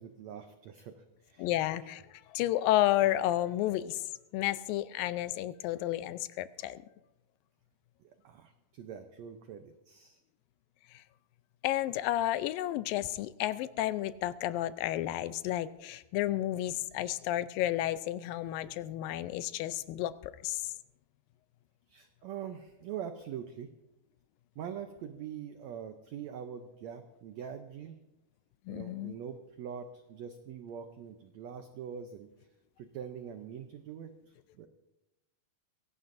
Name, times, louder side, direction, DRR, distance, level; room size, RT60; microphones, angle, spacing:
voice 1, 0.0-1.5 1.8-1.9 8.0-10.2 21.9-23.7 24.5-28.0 28.7-32.3 32.8-34.7, right 8 dB, 80° right, 7 dB, 1.6 m, -44 dB
voice 2, 1.4-4.0 4.3-6.8 11.6-20.7 28.7-29.1, left 14 dB, 85° left, 14 dB, 2.3 m, -31 dB
22.5 x 17.0 x 2.6 m, 0.98 s
omnidirectional pair, 4.0 m